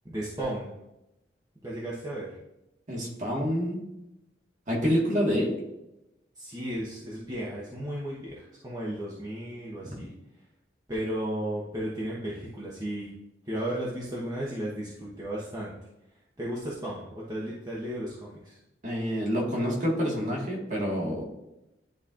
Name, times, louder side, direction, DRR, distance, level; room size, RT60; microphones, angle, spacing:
voice 1, 0.0-0.7 1.6-2.3 6.4-10.1 10.9-13.1 13.4-15.7 16.4-18.6, right 1 dB, 20° right, -6 dB, 1.0 m, -34 dB
voice 2, 2.9-3.8 4.7-5.6 9.8-10.1 18.8-21.2, equal, 40° right, -2 dB, 1.7 m, -27 dB
10.5 x 4.2 x 2.5 m, 0.90 s
head